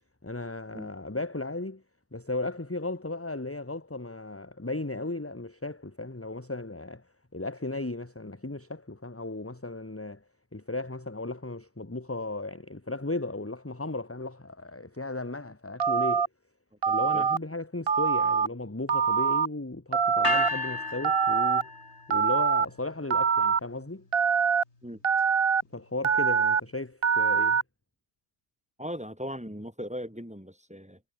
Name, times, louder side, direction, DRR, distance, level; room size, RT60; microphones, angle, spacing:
voice 1, 0.2-1.8 2.1-7.1 7.3-10.2 10.5-16.3 16.9-21.7 22.1-24.1 25.7-27.6, left 2 dB, 10° left, 1.2 m, -35 dB
Telephone, 15.8-16.3 16.8-17.4 17.9-18.5 18.9-19.5 19.9-20.5 21.0-21.6 22.1-22.7 23.1-23.6 24.1-24.6 25.0-25.6 26.0-26.6 27.0-27.6, right 6 dB, 55° right, 1.4 m, -24 dB
sound 1, 20.2-22.3, left 2 dB, 75° left, 4.2 m, -32 dB
voice 2, 28.8-31.0, equal, 5° right, 2.3 m, -38 dB
omnidirectional pair, 1.2 m